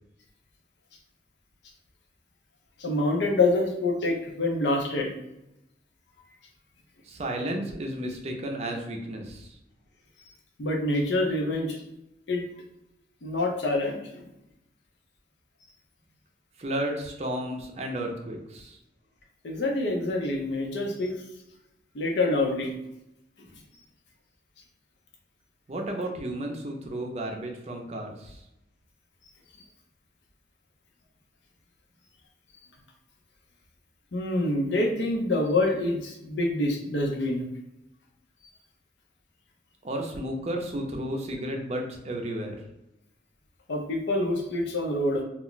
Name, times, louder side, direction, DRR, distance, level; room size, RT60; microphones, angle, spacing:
voice 1, 2.8-5.1 10.6-11.8 12.3-12.4 13.2-14.2 19.4-21.1 21.9-22.7 34.1-37.5 43.7-45.2, left 2 dB, 80° left, 1 dB, 0.6 m, -26 dB
voice 2, 7.0-9.6 16.6-18.8 25.7-28.4 39.8-42.6, right 1 dB, 35° right, 2 dB, 0.4 m, -33 dB
2.3 x 2.1 x 3.8 m, 0.87 s
head